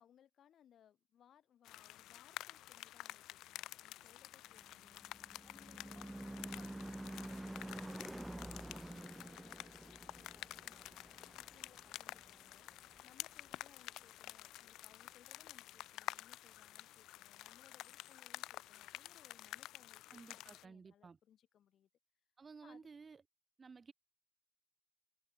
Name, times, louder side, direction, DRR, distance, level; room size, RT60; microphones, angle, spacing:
voice 1, 0.0-5.0 5.4-21.9 22.6-22.8, left 10 dB, 65° left, 5.4 m, -67 dB
sound 1, 1.6-20.6, left 15 dB, 90° left, 0.4 m, -50 dB
Car passing by / Truck / Engine, 4.6-13.3, right 1 dB, 10° right, 1.0 m, -49 dB
voice 2, 20.1-21.2 22.4-23.2 23.6-23.9, right 5 dB, 35° right, 2.6 m, -55 dB
cardioid pair, 90°, 0 cm